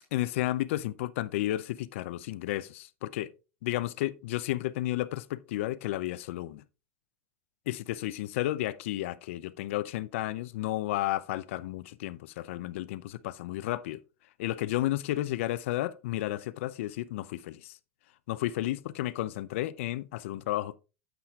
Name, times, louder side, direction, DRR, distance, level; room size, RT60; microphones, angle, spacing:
voice 1, 0.1-3.3 3.6-6.6 7.7-14.0 14.4-17.7 18.3-20.8, left 15 dB, 70° left, 0.6 m, -32 dB
9.4 x 8.3 x 2.4 m
hypercardioid pair, 100°, 7 cm